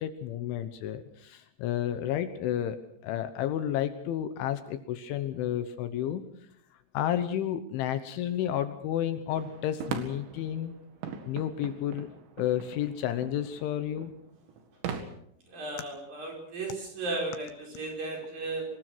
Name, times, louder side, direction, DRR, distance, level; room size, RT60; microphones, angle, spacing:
voice 1, 0.0-2.8 3.0-6.2 6.9-10.7 11.3-12.1 12.4-14.1, left 11 dB, 75° left, 10 dB, 3.3 m, -31 dB
sound 1, 9.3-15.0, right 7 dB, 65° right, 4.1 m, -41 dB
voice 2, 15.5-18.7, right 2 dB, 45° right, 1 dB, 6.7 m, -35 dB
24.5 x 20.5 x 6.2 m, 0.68 s
omnidirectional pair, 5.9 m